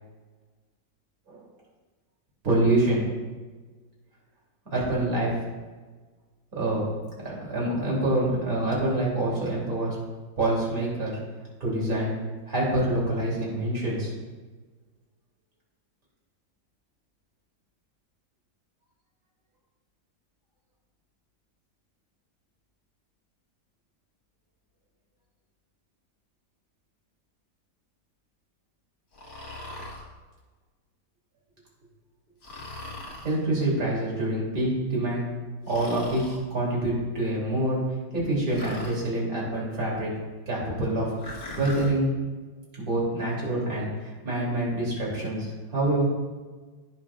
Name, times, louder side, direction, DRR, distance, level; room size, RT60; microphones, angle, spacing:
voice 1, 2.4-3.0 4.7-5.3 6.5-6.8 7.2-10.0 10.4-11.2 11.6-12.2 12.5-14.1 33.2-35.3 35.7-37.8 38.1-40.1 40.5-41.1 41.6-42.1 42.7-46.0, right 1 dB, 45° right, -5 dB, 3.4 m, -26 dB
Breathing, 29.1-30.1 32.4-33.4 35.7-36.4 38.5-39.0 41.2-41.9, left 2 dB, 40° left, 1.5 m, -40 dB
17.5 x 6.1 x 2.4 m, 1.4 s
omnidirectional pair, 2.1 m